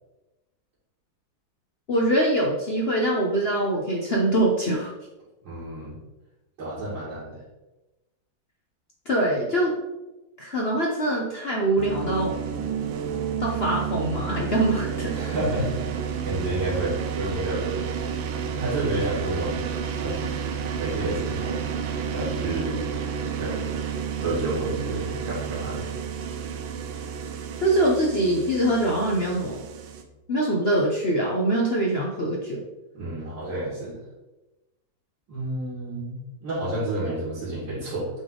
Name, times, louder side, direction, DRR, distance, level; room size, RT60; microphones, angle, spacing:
voice 1, 1.9-4.9 9.1-9.7 10.4-12.4 13.4-15.1 27.6-29.6 30.3-32.6 37.0-37.1, right 1 dB, 60° left, -2 dB, 0.6 m, -23 dB
voice 2, 5.4-5.9 6.6-7.4 15.1-17.8 18.5-19.6 20.0-20.4 20.7-21.7 22.1-22.8 23.4-23.7 24.2-25.8 32.9-34.0 35.3-38.1, right 1 dB, 70° right, -10 dB, 2.6 m, -30 dB
sound 1, 11.8-30.0, right 7 dB, 85° right, 1.4 m, -31 dB
7.7 x 3.5 x 3.8 m, 1.0 s
omnidirectional pair, 2.1 m